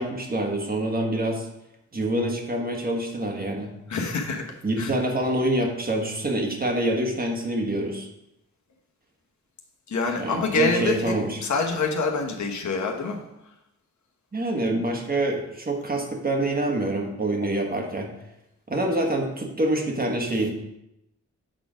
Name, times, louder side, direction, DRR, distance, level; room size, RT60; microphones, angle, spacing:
voice 1, 0.0-1.5 1.9-3.7 4.6-8.1 10.2-11.4 14.3-18.1 18.7-20.5, right 1 dB, 30° right, 2 dB, 1.3 m, -26 dB
voice 2, 3.9-4.4 4.8-4.9 9.9-10.9 11.4-13.2 17.4-17.5, left 4 dB, 70° left, 2 dB, 1.2 m, -26 dB
7.6 x 4.3 x 5.0 m, 0.85 s
wide cardioid pair, 110°, 30 cm